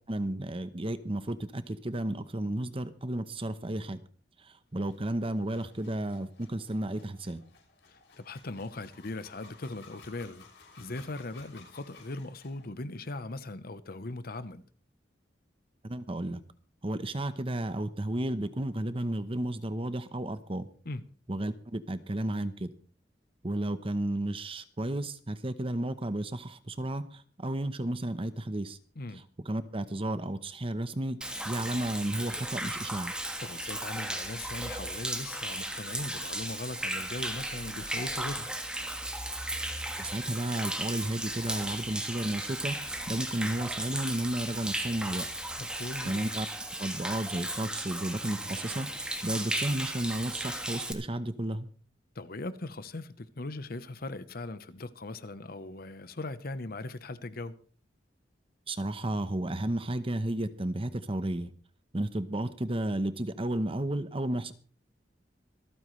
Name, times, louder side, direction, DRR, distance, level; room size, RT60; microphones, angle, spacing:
voice 1, 0.1-4.0 4.4-7.4 15.8-16.4 16.8-20.7 21.3-22.7 23.4-28.8 29.4-31.2 31.4-33.1 40.0-45.2 46.0-46.5 46.8-51.7 58.7-61.5 61.9-64.5, right 1 dB, 30° right, 0.9 m, -33 dB
sound 1, 4.8-12.7, left 4 dB, 80° left, 6.2 m, -56 dB
voice 2, 7.9-10.4 10.8-14.6 20.8-21.0 29.0-29.2 33.4-38.5 45.6-46.3 52.1-57.5, left 2 dB, 55° left, 0.9 m, -39 dB
Human voice / Rain / Stream, 31.2-50.9, right 1 dB, 5° right, 1.5 m, -36 dB
26.0 x 9.1 x 3.2 m
head